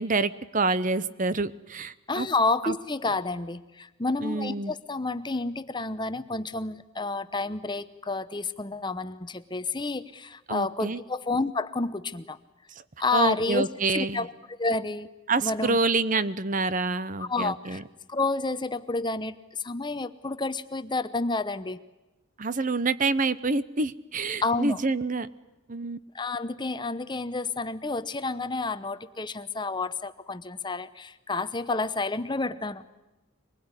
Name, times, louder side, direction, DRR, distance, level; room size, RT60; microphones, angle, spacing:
voice 1, 0.0-2.3 2.6-2.7 4.2-4.7 10.5-11.0 13.1-14.2 15.3-17.8 22.4-25.3 25.7-26.0, right 3 dB, 40° right, 15 dB, 0.8 m, -27 dB
voice 2, 2.1-12.4 13.0-14.3 14.6-15.1 15.4-15.8 17.2-17.8 18.1-21.8 24.4-24.8 26.1-32.8, left 3 dB, 20° left, 12 dB, 0.9 m, -30 dB
24.5 x 20.5 x 9.7 m, 1.0 s
head